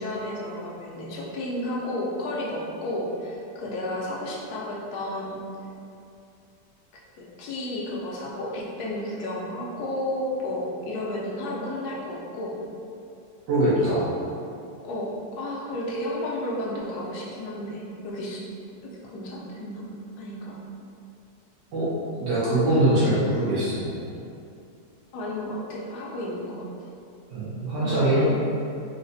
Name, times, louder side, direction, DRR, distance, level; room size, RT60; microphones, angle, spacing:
voice 1, 0.0-5.4 6.9-12.5 14.8-15.1 15.4-18.4 18.8-19.8 20.2-20.5 25.1-26.6 27.8-28.3, left 1 dB, 70° left, -5 dB, 1.1 m, -32 dB
voice 2, 13.5-14.1 21.7-21.9 22.2-23.9 27.3-28.3, right 1 dB, 80° right, -10 dB, 1.4 m, -22 dB
3.9 x 2.2 x 2.6 m, 2.6 s
omnidirectional pair, 1.9 m